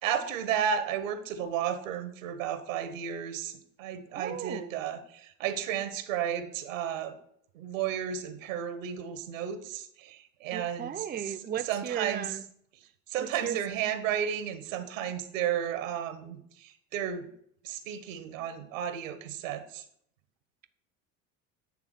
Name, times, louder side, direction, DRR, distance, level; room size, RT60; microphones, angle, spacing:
voice 1, 0.0-7.2 7.5-11.3 11.6-12.3 13.1-17.3 17.6-19.8, right 9 dB, 85° right, 9 dB, 1.2 m, -33 dB
voice 2, 4.2-4.7 10.5-12.4 13.2-13.6, right 9 dB, 25° right, 8 dB, 0.6 m, -36 dB
8.7 x 3.5 x 6.5 m, 0.68 s
hypercardioid pair, 75°, 38 cm